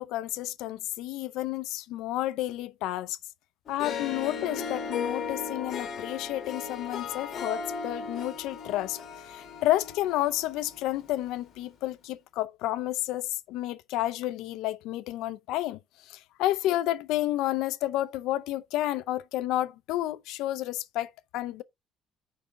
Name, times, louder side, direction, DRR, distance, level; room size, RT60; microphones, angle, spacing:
voice 1, 0.0-3.2 3.7-15.8 16.1-21.6, left 15 dB, 80° left, 0.5 m, -31 dB
Harp, 3.7-11.1, left 6 dB, 40° left, 1.4 m, -36 dB
5.4 x 3.6 x 5.1 m
cardioid pair, 175°, 0 cm